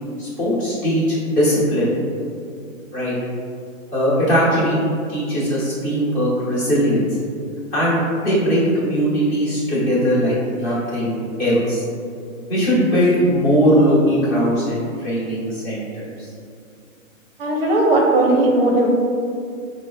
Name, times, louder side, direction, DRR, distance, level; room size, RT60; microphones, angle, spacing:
voice 1, 0.2-1.9 2.9-3.1 3.9-4.8 5.1-7.1 7.7-11.8 12.5-16.3, equal, 20° left, -8 dB, 1.0 m, -19 dB
voice 2, 17.4-18.9, right 2 dB, 45° right, -1 dB, 0.6 m, -17 dB
5.2 x 2.1 x 3.9 m, 2.3 s
hypercardioid pair, 155°, 42 cm